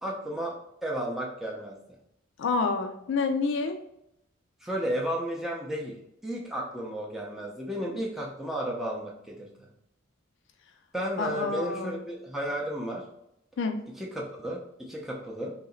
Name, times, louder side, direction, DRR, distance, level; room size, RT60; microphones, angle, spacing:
voice 1, 0.0-0.6 0.8-1.8 4.6-6.0 6.2-9.5 10.9-13.0 14.0-15.5, equal, ahead, -3 dB, 0.5 m, -33 dB
voice 2, 2.4-3.8 11.2-12.0 13.6-13.8, left 4 dB, 60° left, 5 dB, 0.3 m, -28 dB
3.0 x 2.8 x 3.8 m, 0.79 s
head